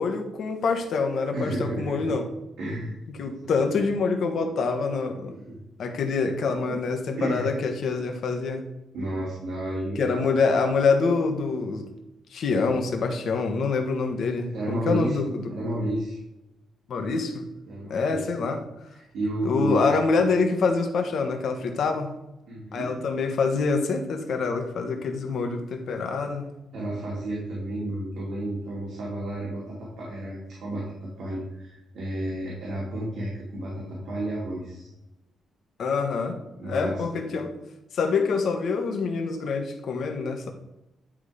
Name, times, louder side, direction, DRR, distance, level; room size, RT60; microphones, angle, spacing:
voice 1, 0.0-2.3 3.2-5.4 5.8-8.7 9.9-11.8 12.3-15.5 16.9-17.5 17.9-18.6 19.4-22.1 22.7-26.5 35.8-37.5 37.9-40.5, left 4 dB, 65° left, 4 dB, 1.3 m, -26 dB
voice 2, 1.3-2.2 2.6-3.9 5.5-5.6 6.7-6.8 7.2-7.5 8.9-10.2 14.5-15.2 15.5-16.2 17.6-18.2 19.1-20.0 22.5-22.9 26.7-34.9 36.6-37.0, right 1 dB, 75° right, -5 dB, 2.5 m, -31 dB
10.5 x 3.8 x 5.0 m, 0.91 s
cardioid pair, 130°, 0 cm